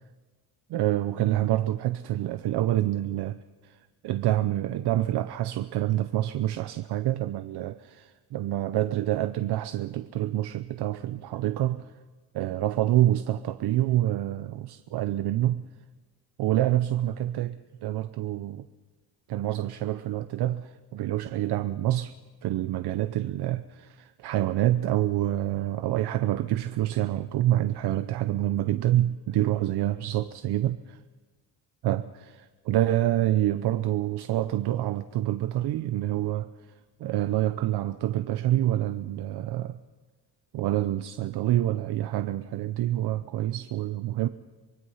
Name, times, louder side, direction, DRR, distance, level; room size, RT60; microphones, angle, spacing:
voice 1, 0.7-11.9 12.3-15.6 16.4-18.7 19.3-22.1 22.4-31.0 31.8-36.5 37.0-39.8 40.5-44.3, right 13 dB, 75° right, 0.7 m, -27 dB
24.5 x 22.0 x 5.6 m
cardioid pair, 150°, 40 cm